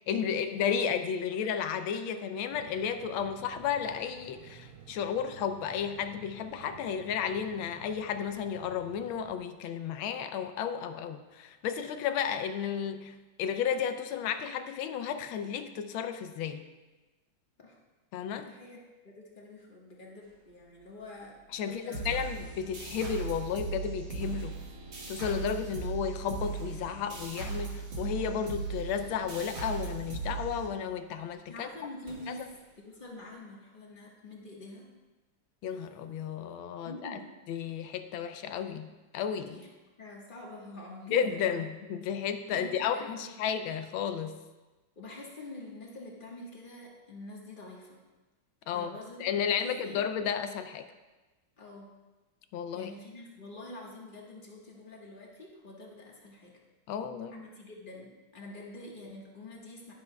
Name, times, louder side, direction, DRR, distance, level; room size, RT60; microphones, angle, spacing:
voice 1, 0.1-16.7 18.1-18.5 21.5-24.6 25.1-31.7 32.3-32.4 35.6-37.2 37.5-39.6 41.1-44.4 48.7-48.9 49.2-50.9 52.5-52.9 56.9-57.5, left 7 dB, 80° left, 9 dB, 1.4 m, -33 dB
sound 1, 2.5-9.4, right 7 dB, 80° right, 1.6 m, -52 dB
voice 2, 18.3-22.2 31.5-34.9 36.8-37.3 39.4-39.7 40.0-41.6 42.5-43.3 44.9-48.0 48.7-50.1 51.6-51.9 52.7-56.6 57.4-59.9, left 2 dB, 30° left, -2 dB, 1.2 m, -46 dB
sound 2, 20.2-33.3, right 1 dB, 35° right, 1.7 m, -58 dB
sound 3, 21.9-31.1, right 5 dB, 60° right, 2.4 m, -38 dB
10.5 x 10.5 x 2.3 m, 1.2 s
omnidirectional pair, 2.3 m